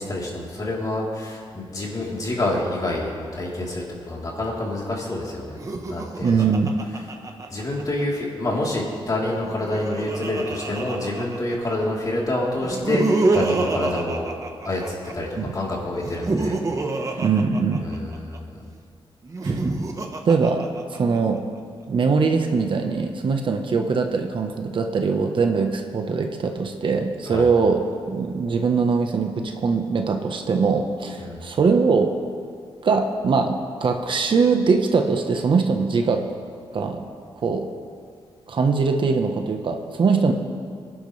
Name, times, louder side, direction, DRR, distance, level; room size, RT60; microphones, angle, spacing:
voice 1, 0.0-5.5 5.9-6.4 7.5-14.3 14.6-16.6 17.1-17.2 17.8-18.6 27.3-27.5 31.2-31.5, left 1 dB, 40° left, -4 dB, 3.7 m, -27 dB
Laughter, 5.5-8.0 9.3-11.7 12.6-15.1 16.0-18.4 19.2-21.2, right 3 dB, 30° right, 1.2 m, -27 dB
voice 2, 6.2-6.8 15.4-15.5 17.2-17.9 19.4-19.6 20.2-20.7 21.0-21.4 21.9-27.8 28.1-32.1 32.8-36.2 36.7-37.0 37.4-37.7 38.5-40.3, right 5 dB, 55° right, 4 dB, 1.2 m, -21 dB
25.0 x 11.5 x 3.4 m, 2.1 s
wide cardioid pair, 115°, 10 cm